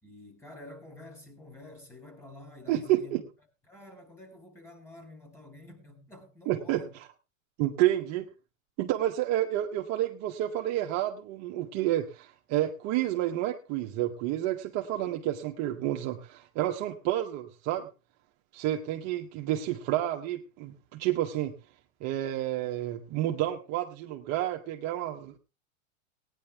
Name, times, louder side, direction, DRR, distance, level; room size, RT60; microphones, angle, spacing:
voice 1, 0.0-3.2 3.7-6.9, left 1 dB, 5° left, 4.1 m, -49 dB
voice 2, 2.7-3.2 6.5-6.8 7.6-8.3 8.8-17.9 18.5-21.5 22.0-25.4, right 13 dB, 40° right, 1.3 m, -30 dB
18.0 x 10.0 x 3.5 m
supercardioid pair, 130°, 39 cm